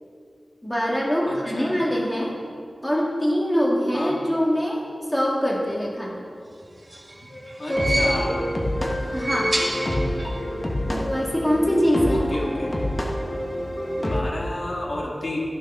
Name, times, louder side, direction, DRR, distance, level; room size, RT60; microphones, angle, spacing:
voice 1, 0.6-2.4 2.8-6.3 7.7-8.1 9.1-9.5 10.9-12.3, equal, 10° left, -3 dB, 2.1 m, -23 dB
voice 2, 1.3-1.8 3.9-4.1 7.6-8.5 12.1-12.7 14.0-15.4, left 1 dB, 55° left, -2 dB, 2.0 m, -31 dB
sound 1, 6.6-8.5 9.0-10.4 10.7-10.8 11.9-12.0, right 1 dB, 35° right, 2.2 m, -29 dB
sound 2, 7.3-14.2, left 1 dB, 35° left, 1.6 m, -27 dB
13.5 x 7.5 x 5.6 m, 2.3 s
wide cardioid pair, 85°, 0 cm